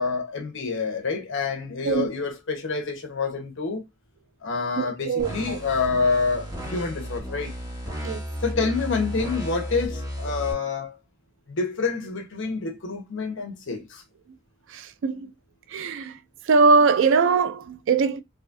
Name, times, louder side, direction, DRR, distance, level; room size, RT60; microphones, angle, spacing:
voice 1, 0.0-3.8 4.4-7.5 8.4-10.9 11.5-14.0, left 4 dB, 65° left, 1.0 m, -27 dB
voice 2, 4.8-5.6 8.0-8.2 15.0-15.3 15.7-16.1 16.5-18.2, right 4 dB, 65° right, 0.4 m, -21 dB
sound 1, 5.2-10.5, equal, 20° right, 1.3 m, -33 dB
4.0 x 2.6 x 2.6 m
head